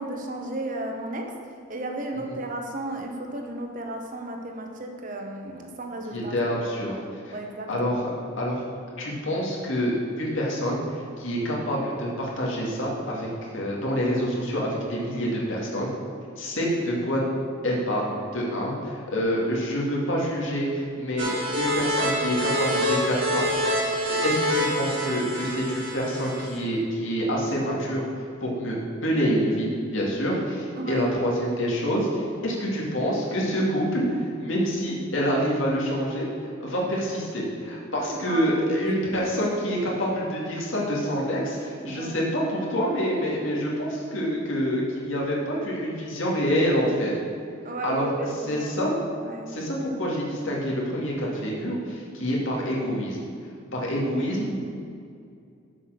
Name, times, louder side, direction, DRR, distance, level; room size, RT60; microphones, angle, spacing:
voice 1, 0.0-1.3 1.7-6.3 7.3-7.9 30.7-31.1 37.9-38.5 39.2-39.4 41.8-42.2 47.6-48.8 49.2-49.5, right 2 dB, 40° right, 3 dB, 1.0 m, -34 dB
voice 2, 6.1-7.0 7.2-7.4 7.7-8.1 8.4-8.6 9.0-15.9 16.4-17.2 17.6-23.6 24.2-28.0 28.4-47.1 47.8-48.9 49.5-53.3 53.7-54.5, equal, 70° left, -4 dB, 2.2 m, -27 dB
sound 1, 21.2-26.6, equal, 60° right, 2.0 m, -26 dB
7.5 x 6.4 x 6.6 m, 2.4 s
head